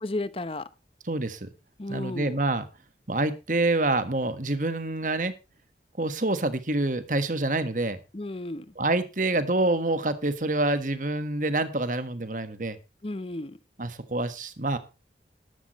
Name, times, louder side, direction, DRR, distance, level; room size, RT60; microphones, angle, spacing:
voice 1, 0.0-0.7 1.8-2.3 8.1-8.7 13.0-13.6, left 2 dB, 30° left, 0.8 m, -33 dB
voice 2, 1.1-1.5 1.9-2.6 3.1-5.3 6.0-8.0 8.8-12.8 13.8-14.8, right 2 dB, 45° right, 1.4 m, -27 dB
13.0 x 12.0 x 3.0 m
head